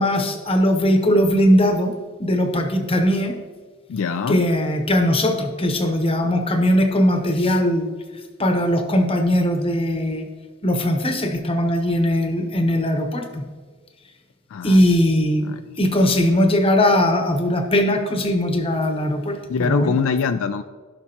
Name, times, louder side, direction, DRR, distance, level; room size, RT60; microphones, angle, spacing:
voice 1, 0.0-1.9 2.2-3.3 4.3-7.9 8.4-10.2 10.6-13.4 14.6-15.4 15.8-19.9, equal, 25° left, 6 dB, 0.9 m, -19 dB
voice 2, 3.9-4.4 14.5-14.8 15.4-15.6 19.5-20.6, left 5 dB, 65° left, 9 dB, 0.3 m, -23 dB
16.5 x 5.9 x 2.9 m, 1.5 s
head